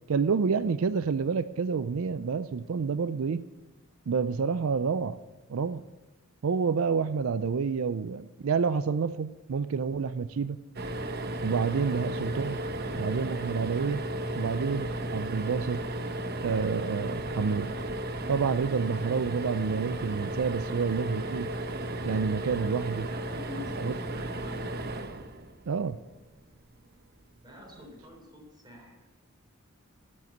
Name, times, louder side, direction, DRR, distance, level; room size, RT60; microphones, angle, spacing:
voice 1, 0.1-3.4 4.1-5.2 5.5-5.8 6.4-10.6 11.4-12.6 12.9-14.0 14.3-15.8 16.4-17.7 18.3-21.5 22.0-23.1 23.8-23.9 25.7-26.0, right 5 dB, 70° right, 14 dB, 0.4 m, -28 dB
sound 1, 10.7-26.0 27.7-27.9 28.2-28.3, right 1 dB, 50° right, 1.0 m, -34 dB
voice 2, 22.9-24.6 27.4-29.0, left 2 dB, 20° right, 0 dB, 3.9 m, -47 dB
12.5 x 7.9 x 8.0 m, 1.1 s
head